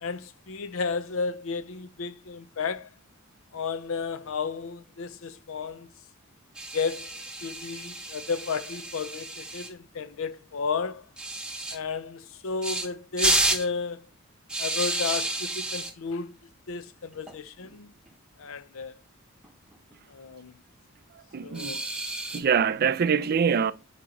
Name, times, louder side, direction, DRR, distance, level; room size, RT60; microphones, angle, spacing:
voice 1, 0.0-2.9 3.5-5.9 6.7-11.0 11.7-14.1 14.6-16.3 16.7-17.9 18.4-19.0 20.1-20.6 21.4-21.9, left 5 dB, 65° left, 0.6 m, -33 dB
sound 1, 6.6-9.7 11.2-11.8 12.6-12.9 13.2-13.7 14.5-15.9 17.1-17.3 17.6-17.7 18.1-18.2 19.4-19.9 21.5-22.4, right 2 dB, 5° right, 0.9 m, -30 dB
voice 2, 21.3-21.8 22.3-23.7, right 7 dB, 45° right, 0.4 m, -24 dB
8.4 x 2.9 x 5.1 m
head